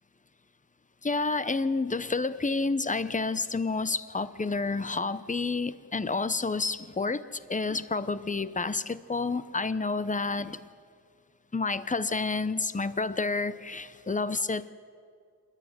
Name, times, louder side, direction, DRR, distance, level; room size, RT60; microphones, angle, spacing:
voice 1, 1.0-10.6 11.5-14.7, left 3 dB, 20° left, 14 dB, 0.7 m, -29 dB
27.5 x 12.5 x 9.5 m, 2.2 s
wide cardioid pair, 100°, 37 cm